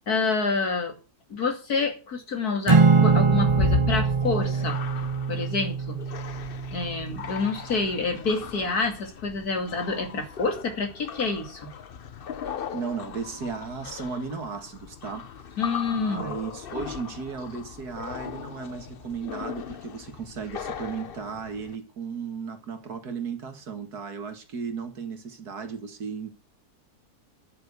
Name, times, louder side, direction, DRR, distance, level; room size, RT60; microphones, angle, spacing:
voice 1, 0.1-0.9 1.3-4.8 5.3-6.0 6.7-11.7 15.6-16.3, left 4 dB, 75° left, 3.0 m, -28 dB
Acoustic guitar / Strum, 2.7-7.1, right 4 dB, 25° right, 0.7 m, -22 dB
sound 1, 3.0-21.8, left 7 dB, 45° left, 0.8 m, -37 dB
voice 2, 12.7-15.3 15.9-26.3, right 5 dB, 85° right, 2.4 m, -35 dB
11.0 x 7.2 x 8.1 m
omnidirectional pair, 1.6 m